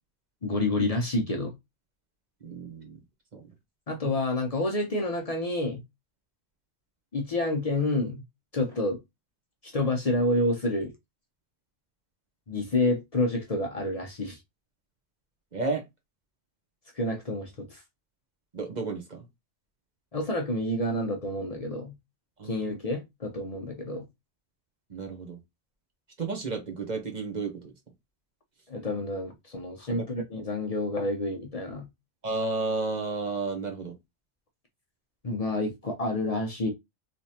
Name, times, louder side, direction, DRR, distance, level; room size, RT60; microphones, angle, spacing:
voice 1, 0.4-1.6 3.9-5.8 7.1-8.2 8.5-9.0 9.6-10.9 12.5-14.4 16.9-17.8 20.1-21.9 22.4-24.0 28.7-31.9 35.2-36.7, left 2 dB, 40° left, 0.6 m, -29 dB
voice 2, 2.4-3.0 3.3-3.5 15.5-15.8 18.5-19.3 22.4-22.7 24.9-25.4 26.2-27.7 29.9-30.0 32.2-34.0, right 3 dB, 40° right, 1.0 m, -32 dB
3.3 x 3.0 x 2.8 m
omnidirectional pair, 1.2 m